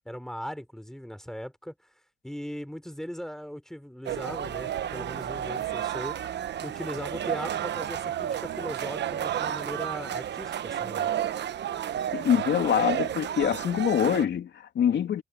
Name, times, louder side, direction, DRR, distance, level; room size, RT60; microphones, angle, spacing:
voice 1, 0.1-1.7 2.2-6.3 6.6-11.1, equal, ahead, 3.4 m, -38 dB
sound 1, 4.0-14.2, right 10 dB, 60° right, 1.1 m, -31 dB
voice 2, 12.1-15.2, left 9 dB, 65° left, 2.9 m, -25 dB
cardioid pair, 90°, 20 cm